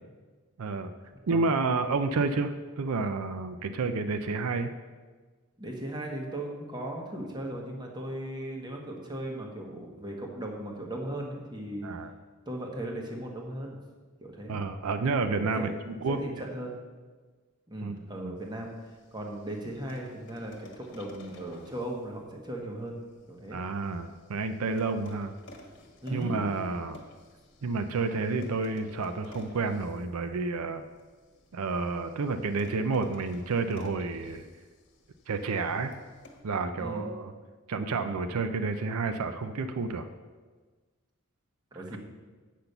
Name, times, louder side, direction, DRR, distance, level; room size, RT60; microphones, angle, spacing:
voice 1, 0.6-0.9 1.3-4.7 11.8-12.1 14.5-16.2 17.8-18.0 23.5-25.3 26.1-27.0 27.6-30.8 31.5-34.5 35.3-35.9 36.4-37.3 37.7-40.1 41.7-41.8, right 3 dB, 85° right, 9 dB, 0.5 m, -30 dB
voice 2, 5.6-11.9 12.5-13.8 14.2-14.6 15.4-15.7 16.1-16.7 17.7-18.7 19.1-23.0 23.3-23.6 26.0-26.5 36.8-37.1 41.7-42.0, right 1 dB, 20° right, 0 dB, 1.3 m, -37 dB
sound 1, 18.4-36.4, left 1 dB, 50° left, 1.4 m, -54 dB
8.3 x 5.9 x 6.8 m, 1.4 s
head